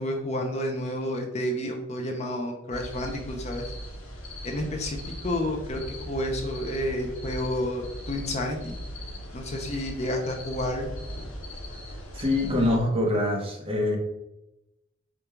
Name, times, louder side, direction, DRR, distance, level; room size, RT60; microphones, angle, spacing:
voice 1, 0.0-3.7 4.4-8.8 9.3-10.9, left 1 dB, 30° left, 2 dB, 0.5 m, -30 dB
sound 1, 2.7-12.8, equal, 80° left, 1.1 m, -39 dB
voice 2, 11.7-14.0, left 1 dB, 25° right, 0 dB, 0.9 m, -25 dB
5.1 x 2.3 x 4.4 m, 0.89 s
head